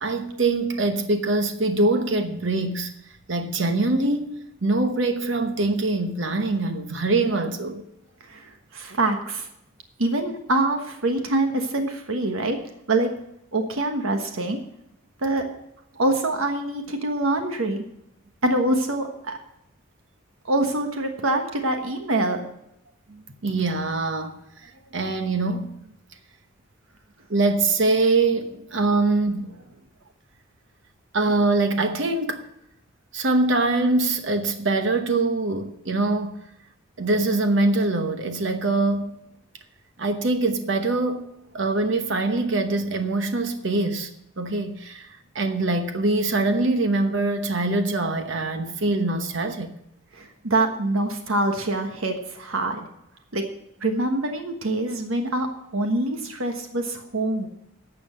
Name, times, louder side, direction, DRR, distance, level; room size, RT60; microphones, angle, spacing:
voice 1, 0.0-7.8 23.1-25.8 27.3-29.5 31.1-32.4 33.1-36.4 37.0-39.2 40.0-44.1 44.4-49.7, right 2 dB, 60° right, 1.0 m, -24 dB
voice 2, 8.2-9.5 10.0-12.6 12.9-13.1 13.5-14.6 15.2-15.5 16.0-17.8 18.4-19.4 20.4-22.5 50.1-52.9 53.3-53.5 53.8-55.5 55.7-57.5, right 2 dB, 80° right, 1.4 m, -25 dB
12.0 x 7.1 x 7.6 m
head